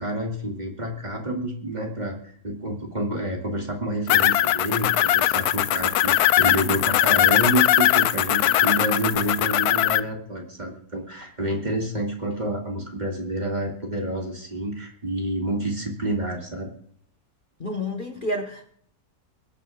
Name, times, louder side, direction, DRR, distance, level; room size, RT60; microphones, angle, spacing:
voice 1, 0.0-16.7, right 1 dB, 30° right, 0 dB, 2.4 m, -28 dB
sound 1, 4.1-10.0, left 12 dB, 80° left, 1.1 m, -20 dB
voice 2, 17.6-18.7, left 1 dB, 35° left, 2 dB, 1.4 m, -29 dB
25.0 x 9.2 x 2.4 m, 0.64 s
omnidirectional pair, 1.6 m